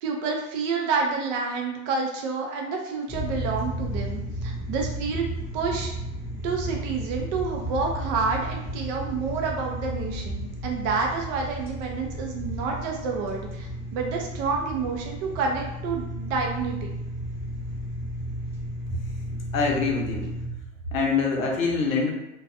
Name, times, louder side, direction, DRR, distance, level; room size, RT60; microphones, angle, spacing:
voice 1, 0.0-5.2 5.5-5.9 6.4-16.9, right 4 dB, 35° right, 1 dB, 0.4 m, -29 dB
sound 1, 3.1-20.5, equal, 5° right, 0.8 m, -33 dB
voice 2, 19.5-20.3 20.9-22.1, left 4 dB, 80° left, 0 dB, 0.7 m, -24 dB
2.6 x 2.2 x 2.5 m, 0.89 s
figure-of-eight pair, 85°, 40 cm